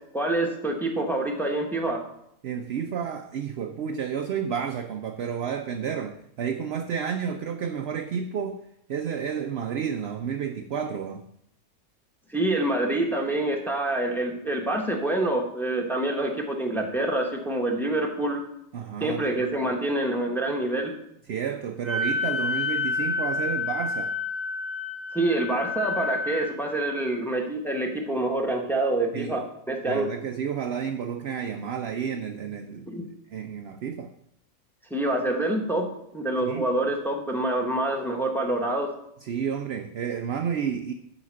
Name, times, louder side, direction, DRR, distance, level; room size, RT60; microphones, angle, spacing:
voice 1, 0.1-2.0 12.3-18.4 19.0-20.9 25.1-30.1 32.9-33.0 34.9-38.9, right 1 dB, ahead, 1.1 m, -26 dB
voice 2, 2.4-8.6 8.9-11.3 18.7-19.7 21.3-24.2 29.1-29.4 29.8-32.9 33.3-34.1 36.4-36.7 39.2-40.9, right 7 dB, 65° right, 0.6 m, -31 dB
Wind instrument woodwind instrument, 21.8-26.5, left 4 dB, 30° left, 1.2 m, -29 dB
8.1 x 5.0 x 6.4 m
omnidirectional pair, 1.6 m